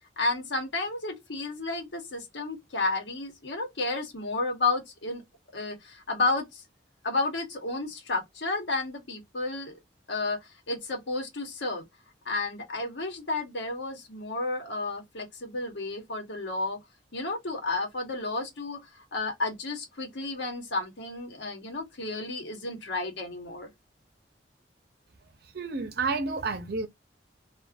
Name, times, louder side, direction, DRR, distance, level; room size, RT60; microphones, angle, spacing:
voice 1, 0.2-5.2 5.5-6.6 7.0-9.8 10.1-11.8 12.2-16.8 17.1-23.7, left 3 dB, 75° left, 1.1 m, -32 dB
voice 2, 25.5-26.9, right 4 dB, 60° right, 0.7 m, -30 dB
2.5 x 2.3 x 2.5 m
head